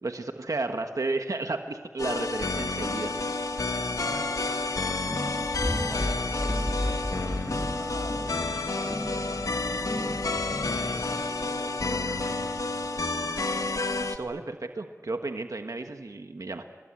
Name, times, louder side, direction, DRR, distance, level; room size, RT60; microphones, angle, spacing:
voice 1, 0.0-3.1 14.0-16.6, right 3 dB, 80° right, 6 dB, 1.4 m, -33 dB
sound 1, 2.0-14.2, left 3 dB, 90° left, 1.7 m, -30 dB
voice 2, 3.8-5.2 5.8-13.4, equal, 15° right, 3 dB, 7.3 m, -45 dB
sound 2, 5.1-11.3, left 1 dB, 35° left, 3.1 m, -34 dB
27.5 x 21.0 x 8.8 m, 1.5 s
wide cardioid pair, 60°, 6 cm